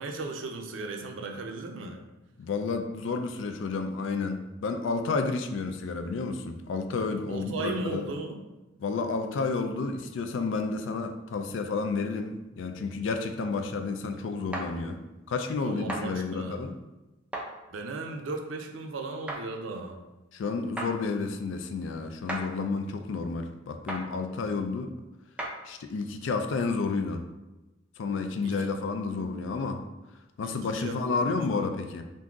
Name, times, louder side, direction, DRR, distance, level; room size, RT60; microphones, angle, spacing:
voice 1, 0.0-2.0 7.3-8.4 15.6-16.6 17.7-20.0 28.4-28.6 30.4-31.7, right 3 dB, 80° right, 3 dB, 0.4 m, -36 dB
voice 2, 2.4-8.0 8.8-15.0 15.3-16.7 20.3-24.9 25.6-27.3 28.0-29.8 30.4-32.0, left 4 dB, 70° left, 7 dB, 0.3 m, -31 dB
sound 1, 14.5-14.7 15.9-16.0 17.3-17.5 19.3-19.4 20.8-20.9 22.3-22.5 23.9-24.0 25.4-25.6, right 1 dB, 5° right, 0.3 m, -33 dB
2.6 x 2.3 x 3.7 m, 1.0 s
head